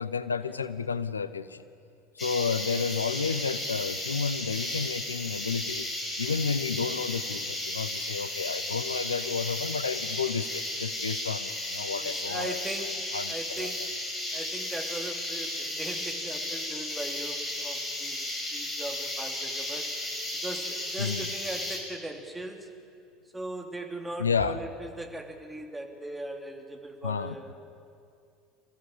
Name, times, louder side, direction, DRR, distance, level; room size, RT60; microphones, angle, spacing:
voice 1, 0.0-1.6 2.2-5.9 6.2-13.7 21.0-21.3 24.2-24.6 27.0-27.4, left 5 dB, 80° left, 13 dB, 0.6 m, -31 dB
sound 1, 2.2-21.8, left 1 dB, 25° left, 6.5 m, -34 dB
voice 2, 12.0-13.9 14.3-20.0 20.4-22.7 23.3-27.6, right 1 dB, 10° right, 2 dB, 2.8 m, -39 dB
26.5 x 15.5 x 7.4 m, 2.4 s
figure-of-eight pair, 70°, 0 cm